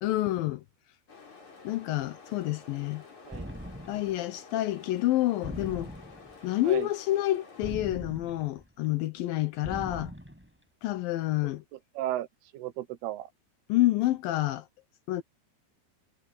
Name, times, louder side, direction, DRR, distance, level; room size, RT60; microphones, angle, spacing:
voice 1, 0.0-0.6 1.6-3.0 3.9-5.9 6.4-10.1 10.8-11.6 13.7-14.7 15.1-15.2, left 15 dB, 80° left, 2.1 m, -28 dB
sound 1, 1.1-7.7, left 4 dB, 40° left, 6.2 m, -51 dB
sound 2, 3.3-4.2 5.4-6.4 7.6-8.6 9.6-10.5, equal, ahead, 6.5 m, -41 dB
voice 2, 12.0-12.3 12.5-13.3, right 14 dB, 75° right, 2.8 m, -34 dB
omnidirectional pair, 5.1 m